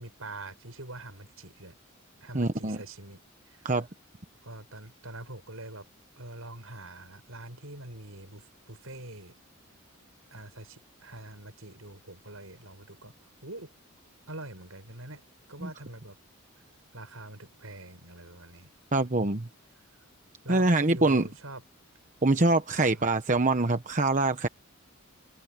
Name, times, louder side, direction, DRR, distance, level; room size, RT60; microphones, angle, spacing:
voice 1, 0.0-1.8 2.2-3.7 4.4-5.9 6.2-9.3 10.3-13.1 13.4-13.7 14.3-15.2 15.5-16.2 16.9-18.7 19.7-19.8 20.4-21.6 22.9-23.1, right 2 dB, 75° right, 7.4 m, -44 dB
voice 2, 2.3-2.8 3.6-3.9 15.6-15.7 18.9-19.5 20.5-21.2 22.2-24.5, right 2 dB, 35° right, 1.1 m, -24 dB
head